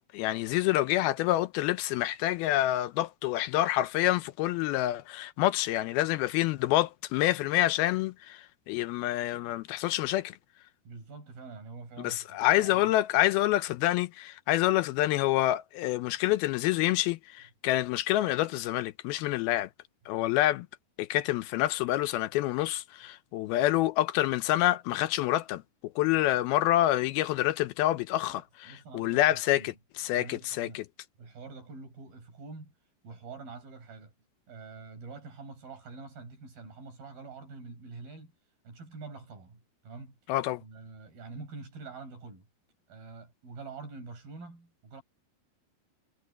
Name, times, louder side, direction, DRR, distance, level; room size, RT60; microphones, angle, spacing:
voice 1, 0.0-8.4 8.7-10.3 12.0-19.7 20.1-20.7 21.0-25.6 26.0-29.7 30.0-30.8 40.3-40.6, left 15 dB, 80° left, 2.4 m, -27 dB
voice 2, 10.9-12.9 28.2-28.4 28.6-30.9 31.2-32.7 33.0-34.1 34.5-38.3 38.6-40.2 40.6-42.5 42.9-45.0, right 4 dB, 60° right, 7.5 m, -46 dB
omnidirectional pair, 4.7 m